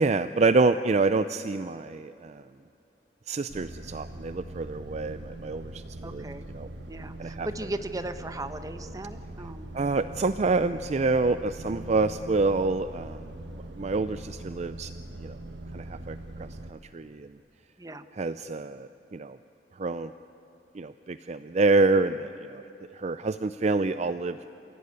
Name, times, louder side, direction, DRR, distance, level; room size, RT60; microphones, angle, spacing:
voice 1, 0.0-2.4 3.3-5.8 6.1-6.2 6.5-6.7 7.2-7.5 9.7-13.3 13.8-14.9 15.2-15.4 15.7-17.3 18.2-19.4 19.8-20.1 20.7-22.6 22.9-24.4, right 3 dB, 40° right, 12 dB, 0.5 m, -27 dB
sound 1, 3.5-16.7, right 1 dB, 90° right, 1.3 m, -42 dB
voice 2, 6.0-6.5 6.9-9.7 17.8-18.1, right 1 dB, 20° right, 9 dB, 1.0 m, -37 dB
28.5 x 16.0 x 9.7 m, 2.8 s
head